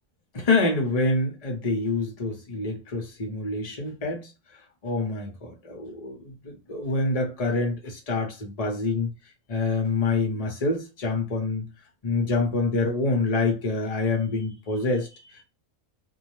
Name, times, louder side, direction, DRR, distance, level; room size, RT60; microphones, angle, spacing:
voice 1, 0.3-4.3 4.8-9.1 9.5-11.7 12.0-15.4, left 3 dB, 35° left, 0.7 m, -26 dB
2.6 x 2.1 x 3.0 m
omnidirectional pair, 1.5 m